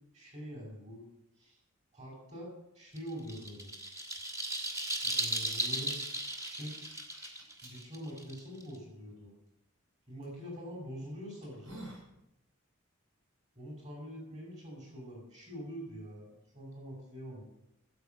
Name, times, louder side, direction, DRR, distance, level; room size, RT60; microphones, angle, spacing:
voice 1, 0.1-1.1 1.4-1.6 1.9-2.5 2.7-3.7 5.0-6.0 6.5-6.8 7.6-9.3 10.1-11.8 13.6-17.4, equal, 30° right, 0 dB, 5.3 m, -44 dB
sound 1, 3.0-8.8, right 1 dB, 15° right, 1.4 m, -36 dB
sound 2, 6.0-7.7 8.4-8.5 10.2-10.4 11.0-11.1 11.4-12.1, right 1 dB, 75° right, 5.6 m, -50 dB
9.3 x 7.9 x 9.2 m, 0.84 s
head